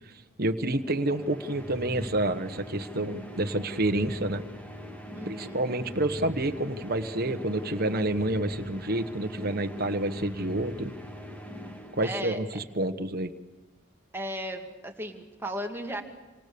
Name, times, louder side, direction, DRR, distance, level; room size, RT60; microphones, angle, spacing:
voice 1, 0.4-4.4 5.3-10.9 11.9-13.3, right 1 dB, 45° right, 7 dB, 1.3 m, -28 dB
sound 1, 0.8-12.6, equal, 10° left, 2.1 m, -41 dB
voice 2, 5.1-5.6 12.0-12.4 14.1-16.0, equal, 10° right, 2 dB, 2.2 m, -35 dB
28.5 x 25.5 x 7.0 m, 1.2 s
head